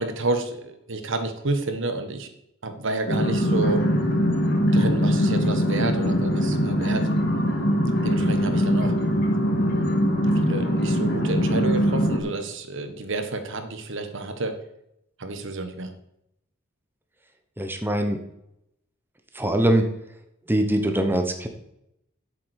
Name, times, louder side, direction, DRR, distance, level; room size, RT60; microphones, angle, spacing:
voice 1, 0.0-2.3 2.6-3.9 4.7-7.3 8.0-8.9 10.4-14.6 15.2-15.9, right 2 dB, 65° right, 8 dB, 1.5 m, -30 dB
sound 1, 3.1-12.2, equal, 55° left, 3.2 m, -22 dB
voice 2, 17.6-18.2 19.3-19.8 20.5-21.5, right 1 dB, 10° right, 5 dB, 1.1 m, -22 dB
8.6 x 7.5 x 8.2 m, 0.80 s
head